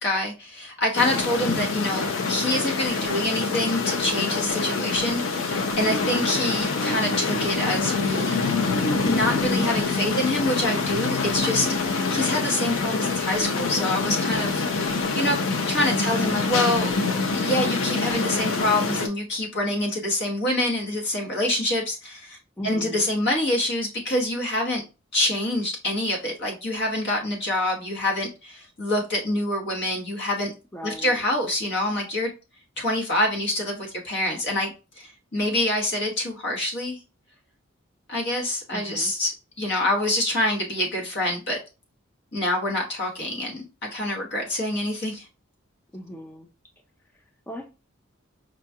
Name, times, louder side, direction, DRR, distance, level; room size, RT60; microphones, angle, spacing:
voice 1, 0.0-8.4 9.0-15.4 15.7-16.9 17.3-22.4 22.6-24.8 25.1-30.5 30.8-32.3 32.8-37.0 38.1-41.6 42.3-43.7 43.9-45.3, left 1 dB, 60° left, 1.4 m, -26 dB
sound 1, 0.9-19.1, left 3 dB, 80° left, 0.6 m, -25 dB
voice 2, 22.6-23.1 30.7-31.2 38.7-39.1 45.9-46.5 47.1-47.6, equal, 10° left, 0.4 m, -39 dB
5.0 x 2.3 x 2.7 m
head